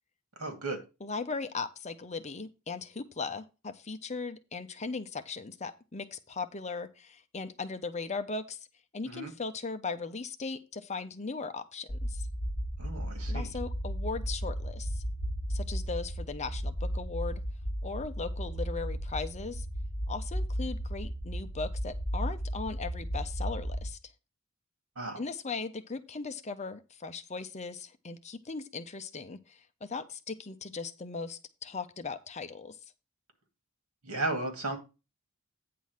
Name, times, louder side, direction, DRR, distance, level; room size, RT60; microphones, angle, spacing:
voice 1, 0.4-0.8 9.1-9.3 12.8-13.5 25.0-25.2 34.0-34.8, right 2 dB, 80° right, 6 dB, 2.4 m, -34 dB
voice 2, 1.0-8.6 8.9-12.3 13.3-15.0 15.5-17.4 17.8-19.7 20.1-24.0 25.2-32.8, left 4 dB, 30° left, 9 dB, 0.8 m, -38 dB
sound 1, 11.9-23.9, equal, 5° right, 1.8 m, -34 dB
9.4 x 3.9 x 6.4 m, 0.29 s
head